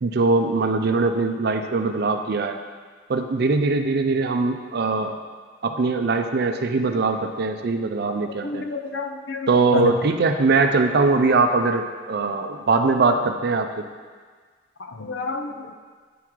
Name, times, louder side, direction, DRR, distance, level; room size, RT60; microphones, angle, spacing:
voice 1, 0.0-2.6 3.1-5.1 5.6-8.7 9.5-13.7, right 3 dB, 55° right, 6 dB, 0.5 m, -21 dB
voice 2, 8.4-10.0 14.8-15.7, left 3 dB, 70° left, 5 dB, 0.6 m, -29 dB
10.0 x 3.7 x 4.6 m, 1.6 s
head